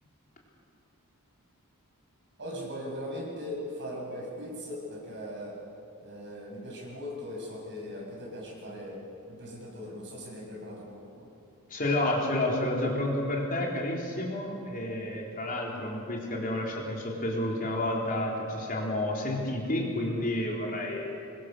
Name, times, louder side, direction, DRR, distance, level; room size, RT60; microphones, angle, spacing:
voice 1, 2.4-5.6 6.0-9.0 9.3-11.3, equal, 55° right, -2 dB, 6.8 m, -39 dB
voice 2, 11.7-21.1, left 1 dB, 40° left, -1 dB, 3.8 m, -30 dB
25.0 x 21.5 x 6.8 m, 2.7 s
head